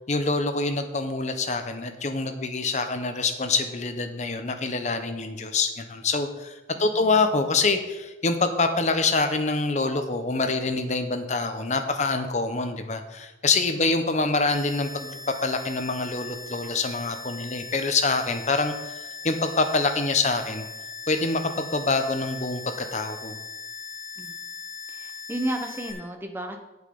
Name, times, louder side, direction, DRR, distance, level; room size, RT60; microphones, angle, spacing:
voice 1, 0.1-20.6 21.1-23.4, left 3 dB, 35° left, 7 dB, 0.8 m, -26 dB
voice 2, 6.7-7.3 24.2-24.4 24.9-26.6, right 1 dB, 10° right, 4 dB, 0.9 m, -33 dB
sound 1, 14.5-25.9, left 4 dB, 20° left, 1.8 m, -40 dB
8.8 x 8.1 x 5.3 m, 1.1 s
head